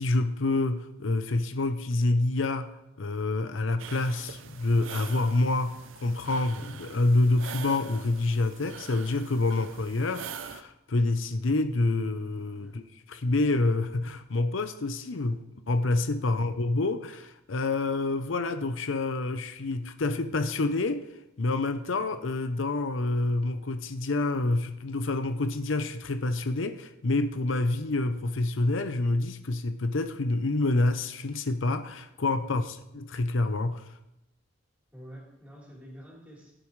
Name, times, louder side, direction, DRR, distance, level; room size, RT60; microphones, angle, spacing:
voice 1, 0.0-2.7 3.0-15.4 15.7-21.1 21.4-33.9, left 2 dB, 85° left, 9 dB, 0.7 m, -27 dB
sound 1, 3.8-10.6, right 7 dB, 85° right, 0.6 m, -44 dB
voice 2, 32.4-32.8 34.9-36.5, equal, 10° right, -5 dB, 3.9 m, -47 dB
16.5 x 8.8 x 3.2 m, 0.90 s
head